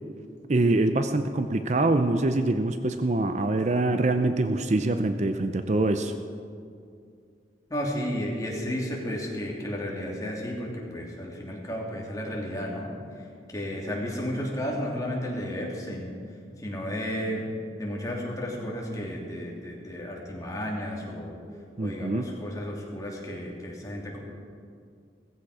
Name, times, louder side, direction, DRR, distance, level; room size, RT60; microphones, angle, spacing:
voice 1, 0.5-6.1 21.8-22.3, right 2 dB, 40° right, 8 dB, 0.6 m, -24 dB
voice 2, 7.7-12.9 13.5-16.1 16.6-17.5 17.8-21.4 21.8-24.2, equal, 20° left, -2 dB, 2.7 m, -33 dB
17.0 x 15.0 x 4.9 m, 2.3 s
head